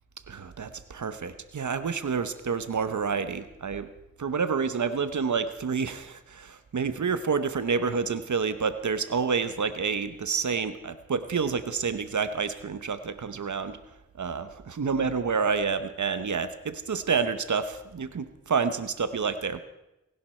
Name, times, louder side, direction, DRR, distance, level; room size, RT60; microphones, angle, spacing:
voice 1, 0.3-3.9 4.2-13.8 14.2-19.6, right 5 dB, 80° right, 11 dB, 0.9 m, -29 dB
27.0 x 11.0 x 4.4 m, 0.93 s
cardioid pair, 45°, 29 cm